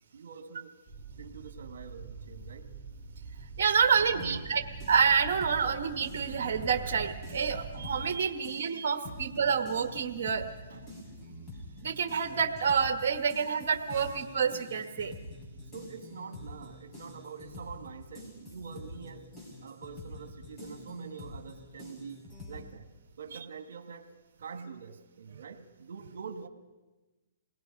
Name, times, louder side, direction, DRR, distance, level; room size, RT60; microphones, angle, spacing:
voice 1, 0.1-0.8 1.2-2.7 3.9-4.5 9.1-9.2 10.7-11.0 15.7-19.3 19.6-22.9 23.2-24.1 24.4-26.5, right 5 dB, 75° right, 7 dB, 1.5 m, -45 dB
sound 1, 0.9-8.0, right 4 dB, 5° right, 4.4 m, -45 dB
voice 2, 3.6-4.6 4.9-10.5 11.8-15.1, right 6 dB, 55° right, 6 dB, 1.4 m, -28 dB
sound 2, 4.2-8.1 8.4-22.6, left 1 dB, 20° left, 6.0 m, -46 dB
28.0 x 19.5 x 5.3 m, 1.2 s
hypercardioid pair, 150°, 0 cm